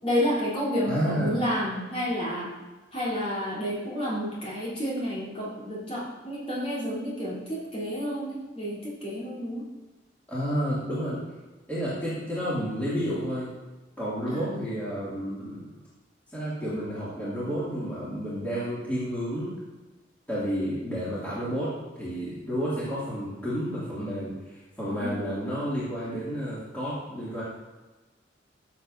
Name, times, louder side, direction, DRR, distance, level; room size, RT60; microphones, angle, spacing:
voice 1, 0.0-2.5 2.9-9.7 14.3-14.7 24.9-25.2, equal, 35° left, -7 dB, 3.4 m, -30 dB
voice 2, 0.9-1.4 10.3-11.2 11.7-13.5 14.0-15.7 16.3-19.5 20.3-27.4, equal, 10° left, -10 dB, 2.4 m, -31 dB
14.5 x 7.3 x 2.7 m, 1.2 s
head